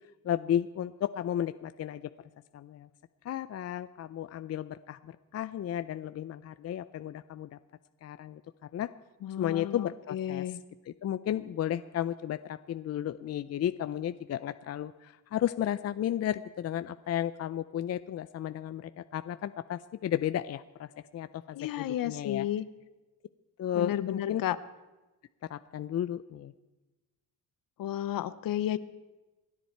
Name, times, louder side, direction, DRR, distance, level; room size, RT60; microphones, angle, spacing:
voice 1, 0.2-2.1 2.5-2.9 3.2-7.6 8.0-8.4 8.7-8.9 9.4-10.4 10.9-22.5 23.6-24.4 25.5-26.5, left 11 dB, 45° left, 12 dB, 0.5 m, -33 dB
voice 2, 9.2-10.6 21.5-22.6 23.7-24.6 27.8-28.8, left 12 dB, 65° left, 15 dB, 0.9 m, -32 dB
27.5 x 10.0 x 4.5 m, 1.1 s
cardioid pair, 110°, 37 cm